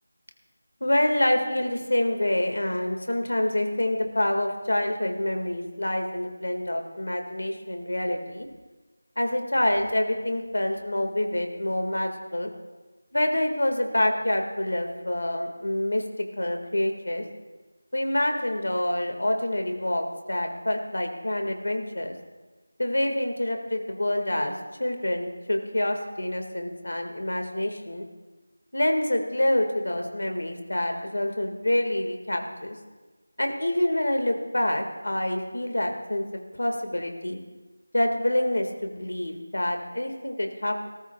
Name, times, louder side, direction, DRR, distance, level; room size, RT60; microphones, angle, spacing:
voice 1, 0.8-8.5 9.2-12.5 13.1-16.0 16.4-17.2 17.9-22.1 22.8-24.5 24.8-28.1 28.7-32.8 33.4-36.2 36.6-37.4 37.9-40.9, left 1 dB, 65° left, 4 dB, 1.9 m, -27 dB
29.5 x 14.0 x 2.4 m, 1.3 s
figure-of-eight pair, 180°, 0 cm